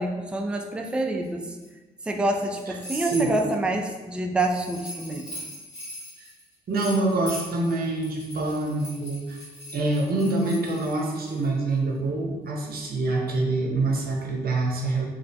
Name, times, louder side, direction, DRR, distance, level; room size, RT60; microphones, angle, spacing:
voice 1, 0.0-1.6 2.0-5.3, right 2 dB, 5° right, 2 dB, 0.3 m, -27 dB
sound 1, 1.2-1.7 2.3-3.5 4.4-11.5, left 1 dB, 65° left, 1.1 m, -41 dB
voice 2, 2.9-3.3 6.7-9.4 9.7-15.1, right 2 dB, 50° right, -1 dB, 0.6 m, -26 dB
2.4 x 2.0 x 2.6 m, 1.2 s
hypercardioid pair, 45°, 20 cm